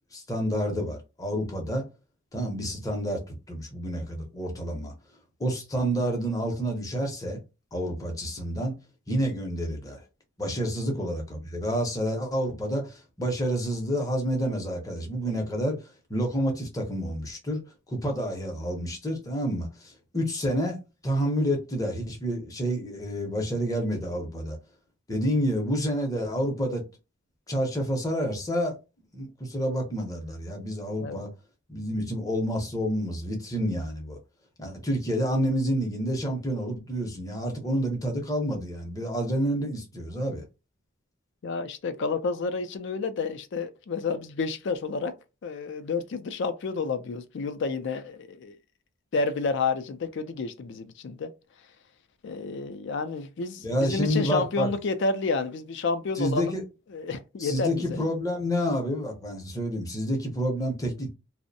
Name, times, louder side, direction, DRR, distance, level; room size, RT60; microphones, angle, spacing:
voice 1, 0.1-1.8 2.3-4.9 5.4-7.4 7.7-8.7 9.1-10.0 10.4-15.8 16.1-17.6 17.9-24.6 25.1-26.8 27.5-28.8 29.1-31.3 31.7-34.2 34.6-40.4 53.6-54.7 56.2-56.6 57.4-61.1, equal, 15° left, 0.6 m, -29 dB
voice 2, 41.4-45.1 45.4-48.5 49.1-51.3 52.2-56.6 56.9-58.0, left 4 dB, 55° left, 0.4 m, -30 dB
2.5 x 2.0 x 2.6 m
head